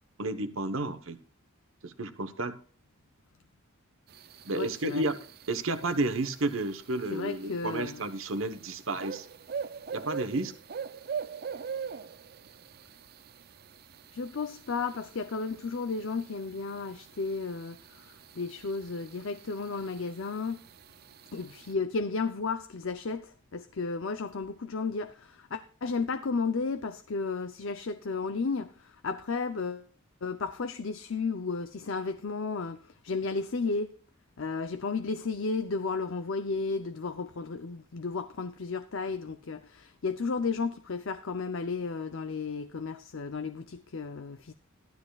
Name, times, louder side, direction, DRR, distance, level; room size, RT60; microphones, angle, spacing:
voice 1, 0.2-1.2 1.8-2.6 4.4-5.2 5.5-9.3 9.9-10.5, right 2 dB, 70° right, 1.1 m, -31 dB
sound 1, 4.1-21.7, right 6 dB, 50° right, 0.5 m, -44 dB
voice 2, 4.6-5.1 7.1-8.0 14.1-20.6 21.3-29.9 30.2-34.0 34.4-44.5, left 4 dB, 65° left, 0.6 m, -33 dB
15.5 x 12.0 x 2.4 m
head